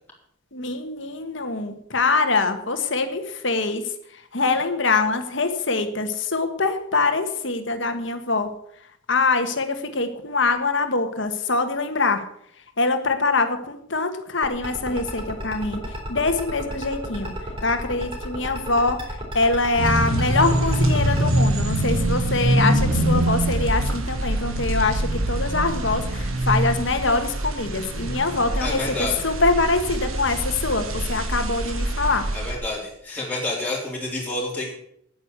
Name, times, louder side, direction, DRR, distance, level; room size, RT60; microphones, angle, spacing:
voice 1, 0.5-8.5 9.1-12.2 12.8-17.3 17.6-32.3, left 3 dB, 60° left, 7 dB, 1.6 m, -24 dB
sound 1, 14.4-21.3, equal, 25° right, 3.7 m, -32 dB
sound 2, 19.8-32.5, right 1 dB, 90° right, 2.0 m, -24 dB
voice 2, 28.6-29.2 32.3-34.7, left 2 dB, 10° left, -5 dB, 3.8 m, -29 dB
9.6 x 9.3 x 8.3 m, 0.71 s
head